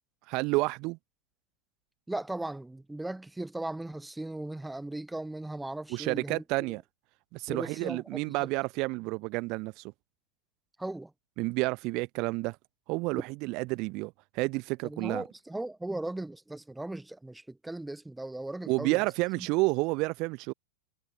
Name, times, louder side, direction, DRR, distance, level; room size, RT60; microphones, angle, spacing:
voice 1, 0.3-1.0 5.9-6.8 7.3-9.9 11.4-12.6 12.9-15.2 18.7-20.5, right 25 dB, 40° right, 0.6 m, -30 dB
voice 2, 2.1-6.8 7.5-8.5 10.8-11.1 14.8-19.0 19.4-19.5, right 2 dB, 5° right, 0.8 m, -38 dB
figure-of-eight pair, 90°, 0 cm